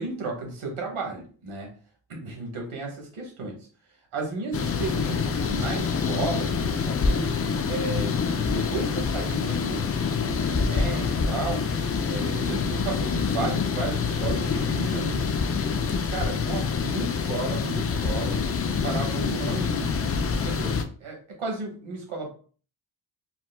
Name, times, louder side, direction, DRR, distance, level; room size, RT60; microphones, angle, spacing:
voice 1, 0.0-1.7 2.1-3.6 4.1-9.8 10.2-11.6 12.0-22.3, right 3 dB, 80° right, 1 dB, 1.2 m, -34 dB
sound 1, 4.5-20.8, left 5 dB, 30° left, 0.4 m, -26 dB
4.5 x 2.1 x 2.2 m, 0.41 s
cardioid pair, 55°, 49 cm